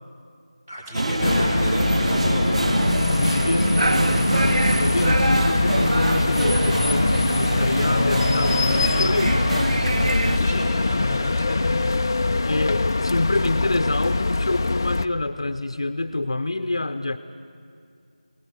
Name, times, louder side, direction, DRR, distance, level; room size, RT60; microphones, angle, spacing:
voice 1, 0.7-2.5 10.3-11.7, equal, 20° right, -5 dB, 4.3 m, -31 dB
sound 1, 0.9-10.4, right 2 dB, 60° right, 0.8 m, -24 dB
sound 2, 1.2-15.1, left 3 dB, 30° left, 0.5 m, -23 dB
voice 2, 3.1-9.5 12.2-17.2, left 2 dB, 50° left, 10 dB, 0.8 m, -26 dB
27.5 x 19.0 x 6.7 m, 2.3 s
figure-of-eight pair, 170°, 4 cm